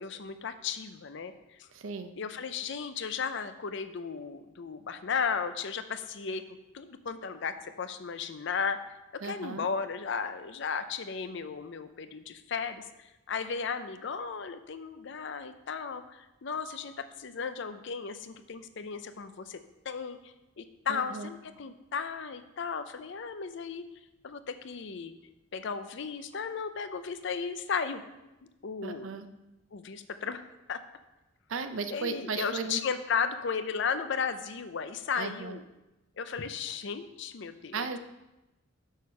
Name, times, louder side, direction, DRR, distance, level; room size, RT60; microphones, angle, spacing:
voice 1, 0.0-1.3 1.6-1.7 2.2-6.4 6.7-8.8 9.1-23.8 24.2-25.1 25.5-28.0 28.6-29.1 29.7-30.8 31.9-35.6 36.2-38.0, left 6 dB, 65° left, 10 dB, 0.6 m, -35 dB
voice 2, 1.7-2.1 9.2-9.7 20.9-21.3 28.8-29.3 31.5-32.8 35.2-35.6 37.7-38.0, right 4 dB, 80° right, 9 dB, 0.6 m, -36 dB
6.5 x 6.4 x 5.5 m, 1.0 s
head